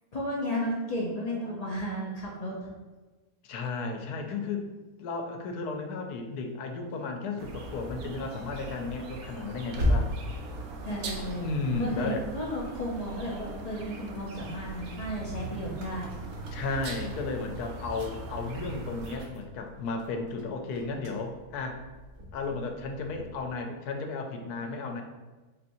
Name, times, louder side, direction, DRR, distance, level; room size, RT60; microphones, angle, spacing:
voice 1, 0.1-2.7 10.8-11.5 11.8-16.1, equal, 65° left, -4 dB, 0.4 m, -33 dB
voice 2, 3.4-4.7 5.0-10.1 11.4-12.3 16.5-21.8 22.3-25.0, left 3 dB, 85° left, 4 dB, 1.1 m, -34 dB
sound 1, 6.9-13.4 13.9-23.7, left 1 dB, 45° right, 0.7 m, -38 dB
sound 2, 7.4-19.2, right 3 dB, 75° right, 1.0 m, -41 dB
4.1 x 3.9 x 2.6 m, 1.2 s
omnidirectional pair, 1.6 m